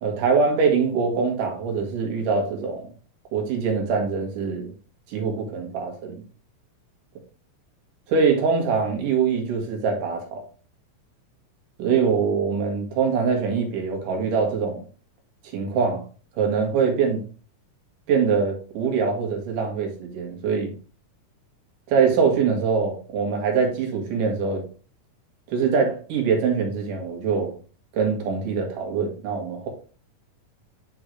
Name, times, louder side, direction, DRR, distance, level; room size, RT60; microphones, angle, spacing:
voice 1, 0.0-2.9 3.3-4.7 5.1-6.2 8.1-10.4 11.8-14.8 15.5-16.0 16.4-17.2 18.1-20.7 21.9-24.6 25.5-27.5 27.9-29.7, right 5 dB, 80° right, 3.0 m, -23 dB
8.8 x 3.9 x 3.2 m
omnidirectional pair, 3.8 m